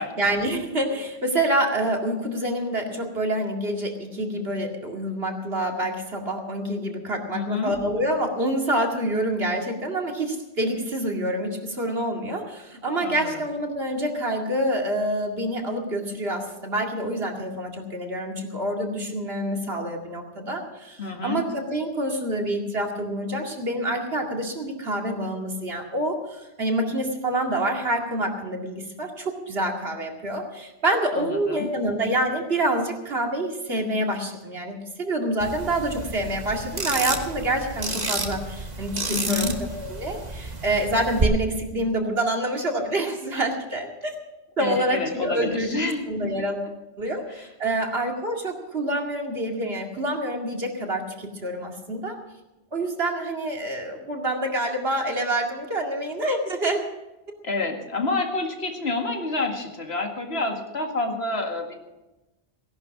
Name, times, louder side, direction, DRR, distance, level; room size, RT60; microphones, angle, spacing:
voice 1, 0.2-39.5 39.8-44.2 44.6-45.8 46.1-46.7 47.0-52.2 52.7-56.9, right 1 dB, 70° right, 1 dB, 2.5 m, -27 dB
voice 2, 7.3-7.7 13.0-13.3 21.0-21.4 31.1-31.7 39.1-39.6 44.6-46.3 47.3-47.5 57.4-61.7, left 3 dB, 75° left, 2 dB, 2.3 m, -28 dB
sound 1, 35.4-41.2, right 3 dB, 40° right, 1.5 m, -31 dB
17.5 x 11.0 x 6.1 m, 1.0 s
omnidirectional pair, 1.1 m